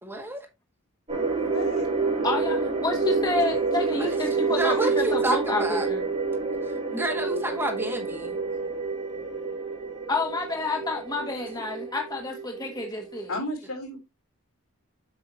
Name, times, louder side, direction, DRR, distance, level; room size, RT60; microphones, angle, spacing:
voice 1, 0.0-0.5 3.9-4.2 4.4-5.9 6.9-8.4, right 1 dB, 10° right, 1.9 m, -30 dB
sound 1, 1.1-13.3, right 4 dB, 30° right, 3.0 m, -28 dB
voice 2, 1.4-1.9 13.3-14.0, left 1 dB, 75° left, 3.6 m, -33 dB
voice 3, 2.2-6.0 10.1-13.3, left 3 dB, 20° left, 1.2 m, -29 dB
7.8 x 6.1 x 2.9 m
head